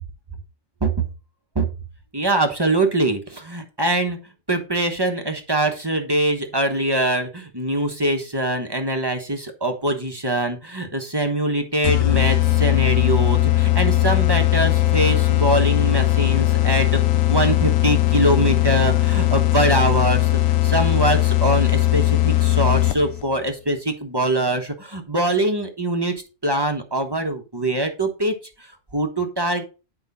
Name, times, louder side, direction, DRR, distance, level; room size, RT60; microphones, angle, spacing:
voice 1, 2.1-4.2 4.5-26.1 26.4-28.7 28.9-29.6, right 1 dB, 20° right, 5 dB, 1.1 m, -23 dB
sound 1, 11.8-23.2, left 14 dB, 85° left, 1.0 m, -19 dB
9.4 x 5.1 x 4.0 m, 0.31 s
omnidirectional pair, 1.3 m